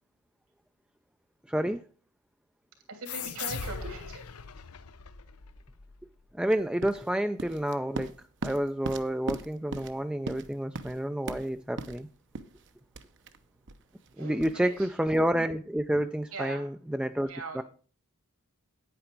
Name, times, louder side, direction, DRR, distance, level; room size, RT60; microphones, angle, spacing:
voice 1, 1.5-1.8 6.4-8.1 8.4-12.1 14.2-17.3 17.5-17.6, right 1 dB, 5° right, 7 dB, 0.4 m, -29 dB
voice 2, 2.9-4.2 14.2-14.9 16.3-16.7 17.3-17.6, right 3 dB, 75° right, 3 dB, 3.0 m, -40 dB
sound 1, 3.1-6.3, left 7 dB, 85° left, 0.7 m, -40 dB
sound 2, 6.5-15.3, right 3 dB, 55° right, 0.8 m, -41 dB
9.5 x 8.8 x 4.5 m, 0.37 s
head